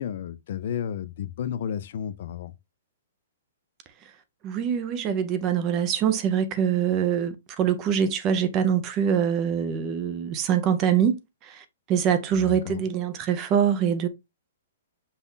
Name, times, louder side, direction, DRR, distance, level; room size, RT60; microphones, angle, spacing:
voice 1, 0.0-2.5 12.3-12.9, left 9 dB, 40° left, 0.4 m, -32 dB
voice 2, 4.4-14.1, right 8 dB, 20° right, 0.4 m, -24 dB
5.4 x 2.3 x 3.8 m
hypercardioid pair, 180°, 0 cm